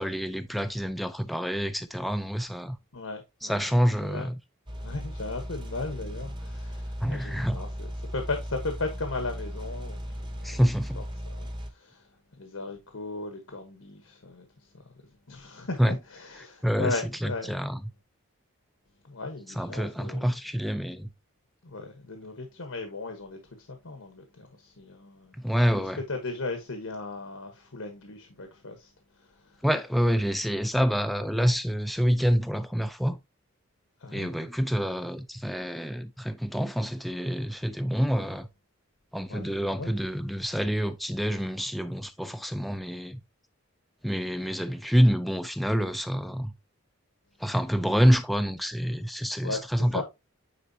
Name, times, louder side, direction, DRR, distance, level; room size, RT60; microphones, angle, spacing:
voice 1, 0.0-2.8 3.4-4.4 7.0-7.6 10.4-11.0 15.8-16.0 16.6-17.8 19.6-21.1 25.4-26.0 29.6-33.2 34.1-38.5 39.1-43.2 44.0-46.5 47.4-50.0, equal, ahead, 0.4 m, -27 dB
voice 2, 2.9-4.3 4.8-10.6 10.9-12.1 12.4-14.9 15.3-17.5 19.0-20.3 21.6-25.4 25.8-29.6 34.0-34.3 39.3-39.9 49.4-50.0, left 3 dB, 80° left, 1.2 m, -37 dB
sound 1, 4.7-11.7, equal, 20° right, 1.0 m, -37 dB
9.4 x 4.0 x 2.7 m
head